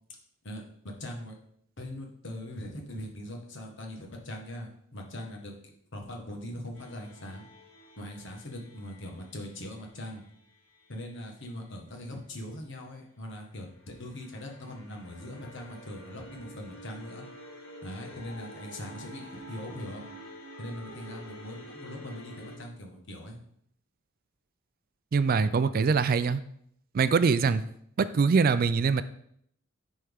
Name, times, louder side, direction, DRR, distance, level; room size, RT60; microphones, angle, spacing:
voice 1, 0.4-1.3 1.8-5.5 5.9-7.4 8.0-10.2 10.9-17.2 17.8-20.1 20.6-23.4, left 1 dB, 65° left, 1 dB, 1.5 m, -41 dB
sound 1, 6.7-10.7 13.8-22.6, equal, 80° left, 2.3 m, -48 dB
voice 2, 25.1-26.4 26.9-27.6 28.0-29.0, right 5 dB, 45° right, 14 dB, 0.3 m, -23 dB
10.0 x 4.4 x 3.6 m, 0.69 s
head